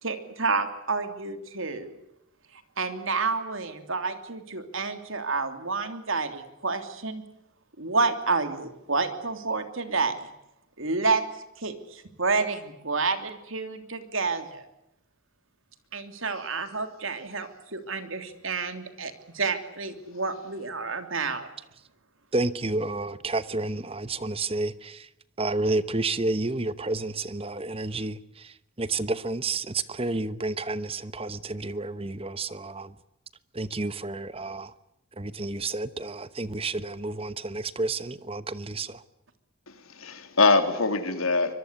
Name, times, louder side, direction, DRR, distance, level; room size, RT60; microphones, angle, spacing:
voice 1, 0.0-1.9 2.8-7.2 7.8-10.3 10.8-11.2 11.6-14.6 15.9-21.5, right 4 dB, 70° right, 3.1 m, -29 dB
voice 2, 22.3-25.1 25.4-32.9 33.5-34.7 35.2-39.0, right 2 dB, 25° right, 1.0 m, -30 dB
voice 3, 39.7-41.5, left 3 dB, 85° left, 3.3 m, -23 dB
25.0 x 22.0 x 8.2 m
head